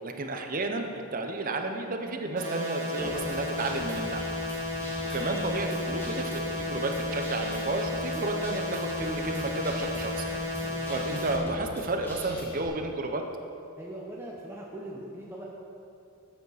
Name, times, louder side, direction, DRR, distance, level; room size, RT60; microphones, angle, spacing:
voice 1, 0.0-4.2 5.0-10.3 10.9-13.2, right 2 dB, 40° right, 4 dB, 0.8 m, -32 dB
sound 1, 2.4-11.4, left 2 dB, 55° right, 1.8 m, -33 dB
Guitar, 3.0-12.7, equal, 10° left, 1.6 m, -42 dB
voice 2, 10.6-10.9 13.8-15.4, right 1 dB, 10° right, -4 dB, 0.9 m, -41 dB
11.5 x 8.2 x 4.1 m, 2.6 s
head